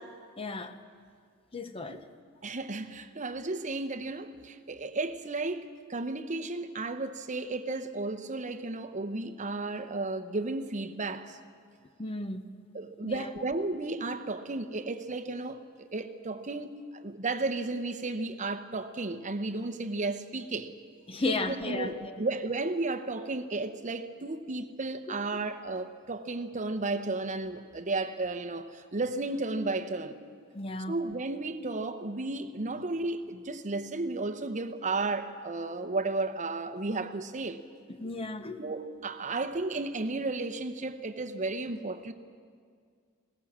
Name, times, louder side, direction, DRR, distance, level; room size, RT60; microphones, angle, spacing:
voice 1, 0.4-0.8 1.5-2.0 12.0-12.5 13.0-13.3 21.1-22.2 30.5-30.9 37.9-38.6, left 2 dB, 25° left, 0.8 m, -34 dB
voice 2, 2.4-11.4 12.7-20.7 21.5-30.2 30.9-37.6 38.6-42.1, right 3 dB, 35° right, 0.9 m, -33 dB
21.0 x 18.0 x 7.4 m
head